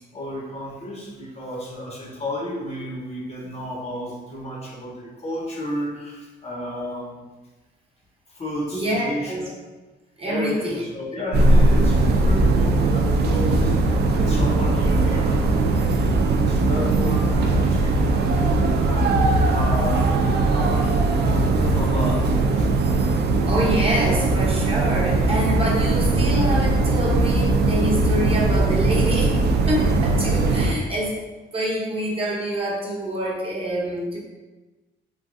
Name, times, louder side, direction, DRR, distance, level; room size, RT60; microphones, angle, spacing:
voice 1, 0.1-7.2 8.3-9.5 10.2-13.8 14.1-19.2 19.5-20.2 20.5-22.7, left 1 dB, 30° left, -2 dB, 0.7 m, -32 dB
voice 2, 8.7-9.5 10.2-10.8 23.5-31.2 31.5-34.2, equal, 30° right, -3 dB, 0.7 m, -26 dB
sound 1, 11.3-30.7, right 2 dB, 60° right, 0.4 m, -19 dB
3.1 x 2.5 x 2.5 m, 1.2 s
cardioid pair, 90°, 20 cm